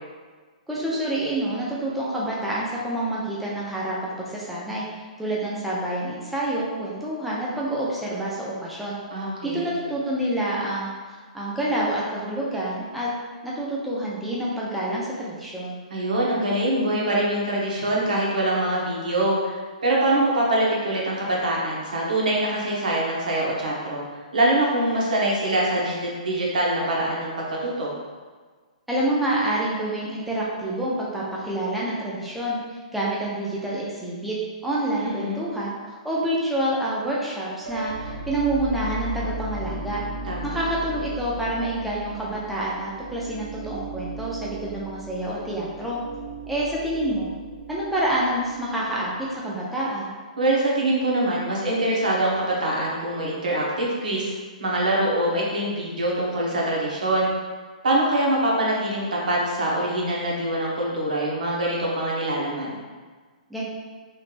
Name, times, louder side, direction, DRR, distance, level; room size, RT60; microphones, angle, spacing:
voice 1, 0.7-9.0 9.4-13.1 13.4-15.8 28.9-34.4 34.6-40.0 40.4-46.0 46.5-47.3 47.7-50.1 63.5-63.6, right 1 dB, ahead, -7 dB, 0.3 m, -27 dB
voice 2, 9.1-9.7 15.9-24.0 24.3-27.9 35.0-35.4 40.2-40.6 50.4-54.3 54.6-57.3 57.8-62.8, right 1 dB, 90° right, -4 dB, 1.0 m, -24 dB
sound 1, 37.6-49.5, right 1 dB, 60° right, 0.6 m, -36 dB
3.2 x 3.1 x 2.4 m, 1.4 s
hypercardioid pair, 170°, 4 cm